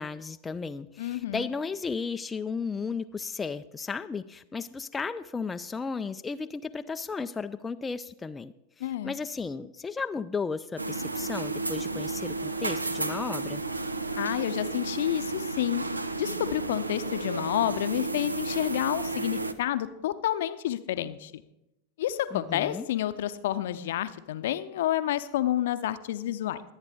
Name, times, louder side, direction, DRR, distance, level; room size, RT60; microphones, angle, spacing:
voice 1, 0.0-13.6 22.3-22.9, left 5 dB, 15° left, 9 dB, 0.4 m, -34 dB
voice 2, 1.0-1.5 8.8-9.1 14.2-15.8 16.2-21.4 22.0-26.6, left 12 dB, 55° left, 13 dB, 0.6 m, -29 dB
sound 1, 10.8-19.5, right 3 dB, 80° right, 0.6 m, -32 dB
22.0 x 8.9 x 3.5 m, 0.89 s
figure-of-eight pair, 90°, 0 cm